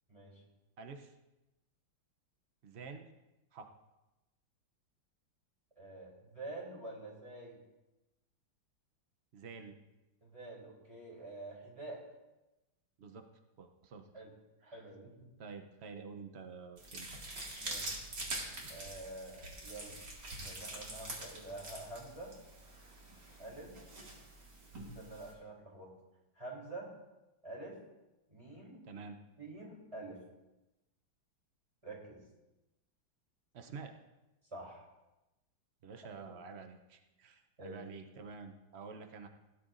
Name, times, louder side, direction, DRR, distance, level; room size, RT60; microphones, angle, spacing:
voice 1, 0.1-0.4 5.8-7.6 10.2-12.0 14.1-14.3 14.6-15.3 17.6-18.0 18.7-20.0 20.3-22.4 23.4-23.7 24.9-25.9 26.3-26.9 27.4-27.8 28.3-28.8 29.4-30.2 31.8-32.2 34.5-34.9 36.1-36.2 37.6-37.8, right 2 dB, 15° right, -5 dB, 3.4 m, -47 dB
voice 2, 0.8-1.1 2.6-3.1 3.5-3.7 9.3-9.8 13.0-13.2 13.6-14.2 14.6-14.8 15.4-17.1 28.8-29.2 33.5-33.9 35.8-39.3, right 5 dB, 90° right, 6 dB, 0.5 m, -49 dB
sound 1, 16.8-25.3, right 2 dB, 60° right, 2.7 m, -45 dB
17.5 x 9.9 x 2.5 m, 1.0 s
omnidirectional pair, 2.1 m